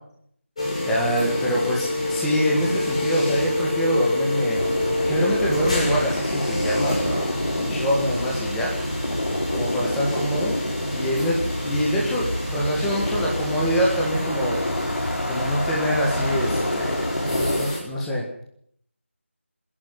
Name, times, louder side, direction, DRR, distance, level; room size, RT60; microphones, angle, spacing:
sound 1, 0.6-17.8, left 1 dB, 30° left, 6.4 m, -28 dB
voice 1, 0.9-4.6 4.9-8.7 9.5-10.5 10.9-14.6 15.2-17.0 17.2-18.2, equal, 5° left, -4 dB, 1.7 m, -25 dB
sound 2, 4.6-17.6, left 1 dB, 90° left, 4.6 m, -28 dB
26.5 x 11.0 x 9.8 m, 0.67 s
figure-of-eight pair, 175°, 7 cm